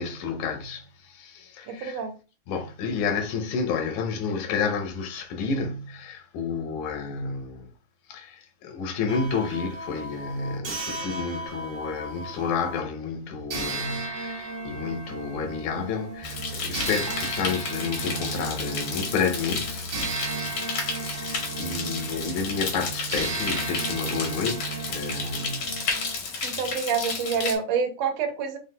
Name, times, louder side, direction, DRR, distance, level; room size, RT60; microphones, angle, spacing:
voice 1, 0.0-2.0 2.5-7.7 8.1-19.9 20.9-25.9, left 5 dB, 80° left, 2.1 m, -30 dB
voice 2, 1.7-2.1 26.4-28.6, right 6 dB, 75° right, 1.8 m, -27 dB
sound 1, 9.1-12.8 13.5-26.2, right 2 dB, 55° right, 1.3 m, -36 dB
sound 2, 16.2-27.5, left 4 dB, 65° left, 1.4 m, -32 dB
sound 3, 16.2-25.3, right 6 dB, 90° right, 2.0 m, -39 dB
5.7 x 3.2 x 2.2 m
omnidirectional pair, 3.3 m